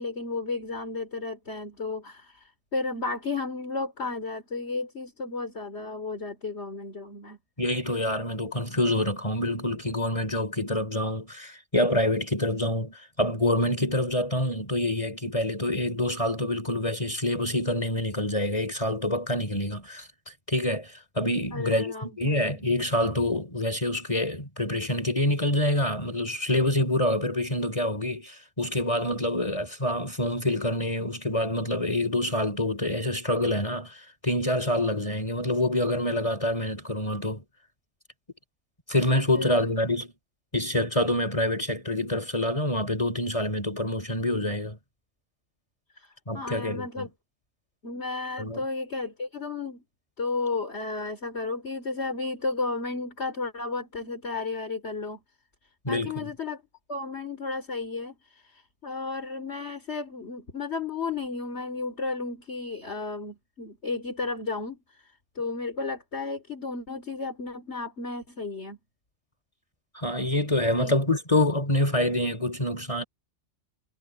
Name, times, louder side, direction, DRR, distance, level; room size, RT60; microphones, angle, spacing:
voice 1, 0.0-7.4 21.5-22.5 39.3-39.7 45.9-47.1 47.8-49.8 50.2-55.2 55.9-56.6 56.9-68.8 70.8-70.9, left 3 dB, 65° left, 3.4 m, -33 dB
voice 2, 7.6-20.1 20.5-37.4 38.9-40.1 40.5-44.8 46.3-47.1 48.4-48.6 55.9-56.3 69.9-73.0, left 1 dB, 25° left, 3.5 m, -26 dB
omnidirectional pair, 1.2 m